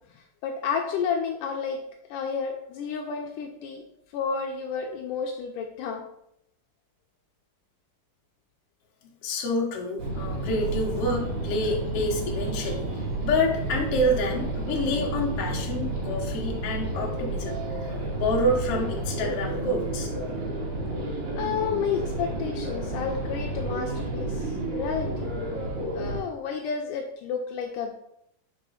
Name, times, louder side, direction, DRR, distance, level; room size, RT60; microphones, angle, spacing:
voice 1, 0.1-1.8 2.1-3.8 4.1-6.0 21.4-25.3 25.8-27.9, left 6 dB, 80° left, 2 dB, 2.1 m, -31 dB
voice 2, 9.2-12.9 13.2-20.1, left 1 dB, 55° left, -1 dB, 1.8 m, -28 dB
sound 1, 10.0-26.2, right 2 dB, 70° right, 2.6 m, -31 dB
5.1 x 4.5 x 5.5 m, 0.75 s
omnidirectional pair, 3.9 m